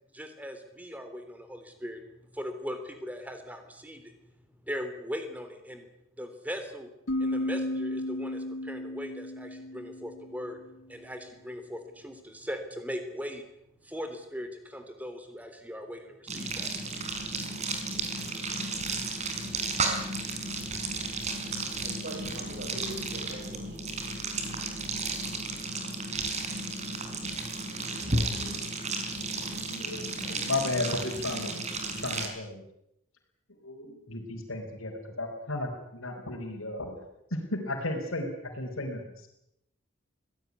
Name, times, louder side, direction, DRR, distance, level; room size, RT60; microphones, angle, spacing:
voice 1, 0.1-2.0 2.3-4.1 4.6-5.9 6.2-6.9 7.2-10.6 10.9-13.4 13.8-16.7 17.6-17.7, equal, 5° right, 7 dB, 3.5 m, -39 dB
sound 1, 7.1-10.7, left 1 dB, 65° left, 1.0 m, -34 dB
sound 2, 16.3-32.3, right 3 dB, 35° right, 4.5 m, -33 dB
voice 2, 21.8-23.6, right 1 dB, 50° right, -2 dB, 6.8 m, -42 dB
voice 3, 29.7-31.6 31.8-32.6 33.6-37.0 37.3-39.3, left 2 dB, 80° left, -1 dB, 4.7 m, -34 dB
24.0 x 17.5 x 9.7 m, 0.81 s
head